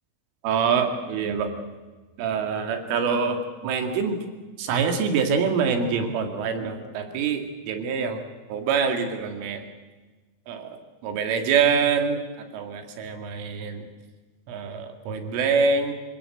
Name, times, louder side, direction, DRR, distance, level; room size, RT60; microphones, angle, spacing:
voice 1, 0.4-1.5 2.2-4.2 4.6-8.2 8.5-9.6 10.5-10.8 11.0-12.2 12.5-13.8 14.5-15.9, right 5 dB, 90° right, 6 dB, 4.9 m, -25 dB
26.5 x 17.0 x 7.9 m, 1.3 s
omnidirectional pair, 5.5 m